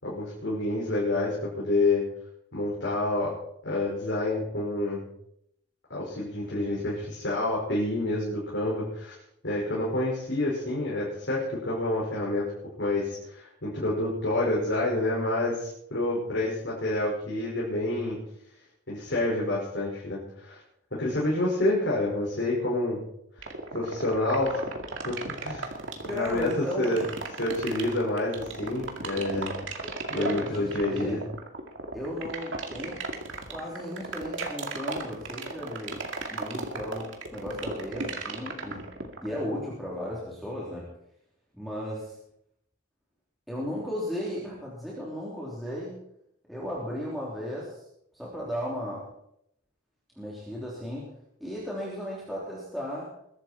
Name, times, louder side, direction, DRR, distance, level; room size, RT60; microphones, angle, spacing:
voice 1, 0.0-2.0 2.5-3.3 3.6-5.0 5.9-9.2 9.4-12.5 12.8-18.2 18.9-20.6 20.9-23.0 23.7-24.6 25.0-25.8 26.0-27.0 27.4-29.5 30.1-31.2, left 2 dB, 65° left, -6 dB, 5.5 m, -28 dB
sound 1, 23.4-39.4, right 3 dB, 70° right, 2.3 m, -35 dB
voice 2, 26.1-26.9 30.1-31.2 31.9-33.1 33.5-36.0 36.3-38.9 39.2-40.9 41.5-42.2 43.5-46.0 46.5-47.8 48.1-49.1 50.2-51.1 51.4-53.1, equal, ahead, -6 dB, 3.4 m, -35 dB
22.0 x 12.0 x 4.5 m, 0.74 s
head